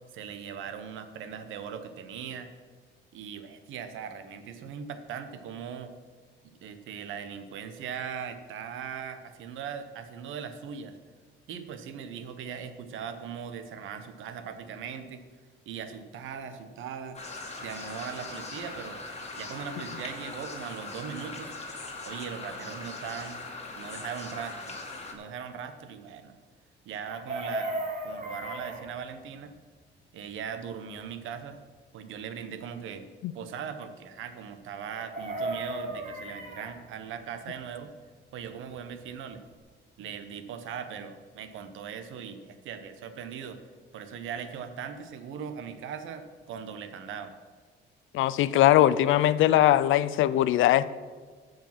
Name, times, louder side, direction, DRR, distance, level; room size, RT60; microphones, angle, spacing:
voice 1, 0.1-2.5 3.1-5.9 6.4-11.0 11.5-15.2 15.7-17.2 17.6-19.0 19.4-21.5 22.0-23.4 23.8-24.8 25.1-26.4 26.8-29.5 30.1-31.6 31.9-33.1 33.3-37.9 38.3-39.5 40.0-43.6 43.9-47.3, right 7 dB, 85° right, 9 dB, 1.0 m, -39 dB
sound 1, 17.1-25.1, left 3 dB, 35° left, 2.2 m, -40 dB
Chicken rooster, 27.0-28.8 34.9-36.7 39.0-39.1 39.3-39.6, right 1 dB, 35° right, 3.0 m, -35 dB
voice 2, 48.1-51.0, left 13 dB, 85° left, 16 dB, 0.5 m, -21 dB
14.5 x 5.2 x 5.9 m, 1.5 s
cardioid pair, 90°, 20 cm